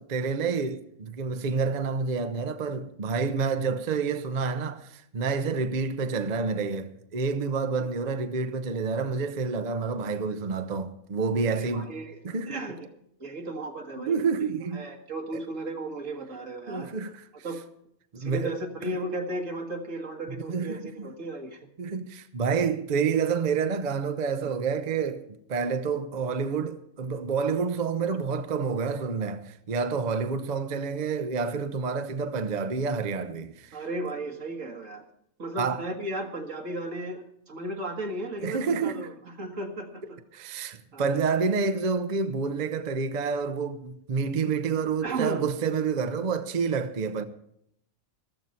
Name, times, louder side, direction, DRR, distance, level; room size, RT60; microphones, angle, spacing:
voice 1, 0.0-11.9 12.2-12.6 14.0-14.8 15.3-15.4 16.7-17.1 18.1-19.0 20.5-21.1 21.8-33.8 35.6-35.8 38.4-39.1 40.3-47.2, right 5 dB, 40° right, 0.8 m, -28 dB
voice 2, 11.5-12.2 12.5-12.9 13.2-14.3 14.7-16.9 17.4-17.6 18.2-21.7 33.7-35.1 35.4-40.2 40.9-41.1 45.0-45.5, right 2 dB, 85° right, 2.2 m, -35 dB
14.5 x 13.5 x 4.3 m
omnidirectional pair, 1.3 m